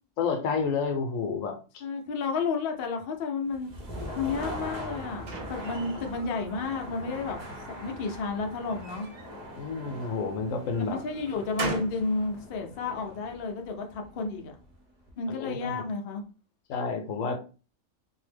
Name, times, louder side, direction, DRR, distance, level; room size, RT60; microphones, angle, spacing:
voice 1, 0.2-1.6 4.2-4.3 9.5-11.0 15.3-15.8 16.7-17.4, left 5 dB, 80° left, 5 dB, 1.0 m, -30 dB
voice 2, 1.8-7.4 7.7-9.1 10.8-14.6 15.2-16.2, left 4 dB, 60° left, 3 dB, 0.6 m, -32 dB
sound 1, 3.5-15.3, equal, 45° right, 0.6 m, -42 dB
sound 2, 4.6-6.5 7.0-7.7 8.7-10.2 10.7-12.1, right 3 dB, 85° right, 1.2 m, -40 dB
2.7 x 2.0 x 3.3 m, 0.35 s
omnidirectional pair, 1.4 m